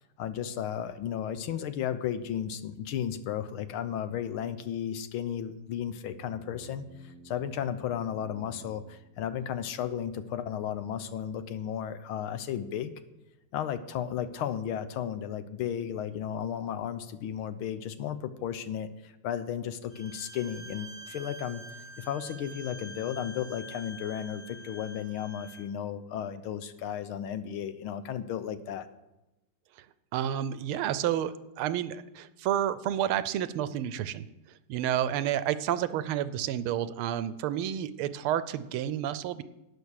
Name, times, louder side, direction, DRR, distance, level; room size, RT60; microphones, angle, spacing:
voice 1, 0.2-12.9 13.5-21.6 22.0-28.9, left 9 dB, 80° left, 12 dB, 1.6 m, -34 dB
sound 1, 6.2-9.9, right 5 dB, 70° right, 1.2 m, -54 dB
Bowed string instrument, 19.9-25.7, right 1 dB, 60° left, 3.3 m, -47 dB
voice 2, 30.1-34.2 34.7-39.4, right 11 dB, 85° right, 14 dB, 1.5 m, -30 dB
11.5 x 9.7 x 6.4 m, 0.97 s
omnidirectional pair, 2.3 m